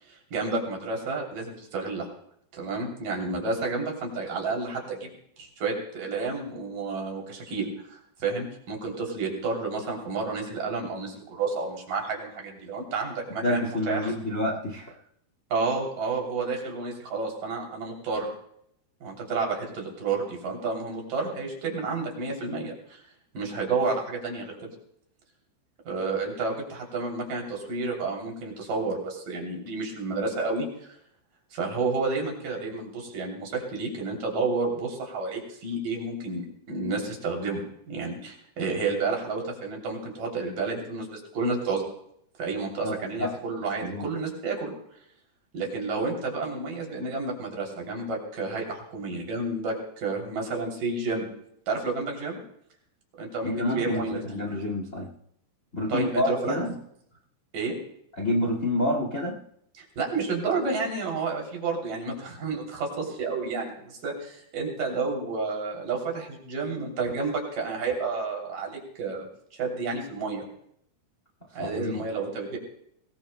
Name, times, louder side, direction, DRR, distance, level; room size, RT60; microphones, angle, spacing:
voice 1, 0.1-2.1 2.5-5.1 5.4-14.1 15.5-18.3 19.0-23.0 23.3-24.5 25.8-30.9 31.5-36.4 36.7-37.6 37.9-41.8 42.4-44.7 45.5-51.3 51.7-52.4 53.2-54.5 55.9-56.6 57.5-57.7 59.8-69.3 69.5-70.5 71.5-72.6, right 3 dB, 55° right, 0 dB, 4.5 m, -30 dB
voice 2, 13.4-14.9 42.8-43.3 43.8-44.1 53.4-55.1 55.7-56.8 58.2-59.4 71.6-72.0, left 1 dB, 35° left, 0 dB, 1.2 m, -28 dB
23.5 x 20.0 x 2.2 m, 0.72 s
omnidirectional pair, 4.8 m